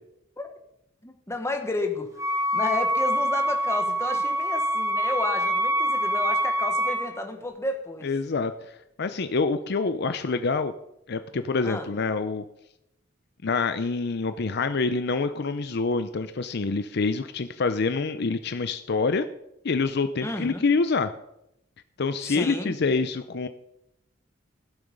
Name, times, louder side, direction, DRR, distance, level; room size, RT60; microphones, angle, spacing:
voice 1, 1.0-2.1 2.5-8.1 11.6-11.9 20.2-20.7 22.2-22.8, left 2 dB, 15° left, 4 dB, 1.4 m, -32 dB
Wind instrument woodwind instrument, 2.2-7.1, equal, 15° right, 2.2 m, -25 dB
voice 2, 8.0-8.7 9.0-10.7 11.1-12.4 13.4-19.3 19.6-21.1 22.0-23.5, left 4 dB, 55° left, 10 dB, 0.6 m, -26 dB
16.0 x 7.1 x 5.2 m, 0.82 s
head